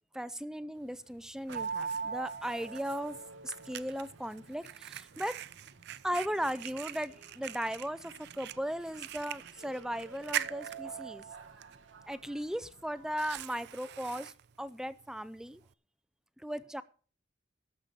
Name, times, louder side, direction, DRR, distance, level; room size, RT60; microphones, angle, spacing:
voice 1, 0.1-3.2 3.4-5.4 6.0-11.2 12.1-15.6 16.4-16.8, equal, 5° right, 15 dB, 0.4 m, -37 dB
Fire, 0.8-15.7, right 11 dB, 60° right, 0.5 m, -45 dB
sound 1, 1.5-13.4, right 5 dB, 90° right, 1.2 m, -45 dB
13.5 x 5.5 x 8.2 m, 0.40 s
head